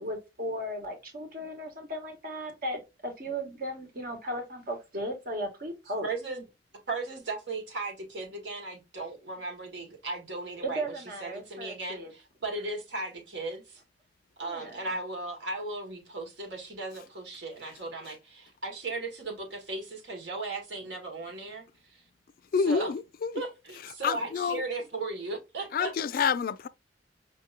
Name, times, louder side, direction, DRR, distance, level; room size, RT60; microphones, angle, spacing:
voice 1, 0.0-6.1 10.6-12.1 14.4-14.8, equal, 55° right, 1.4 m, -36 dB
voice 2, 6.0-6.4 6.9-13.8 14.4-21.6 21.9-22.0 22.6-22.9 23.3-25.9, right 3 dB, 80° right, 1.8 m, -36 dB
voice 3, 22.5-23.3 24.0-24.6 25.7-26.7, left 6 dB, 50° left, 0.3 m, -28 dB
5.1 x 2.8 x 2.5 m
head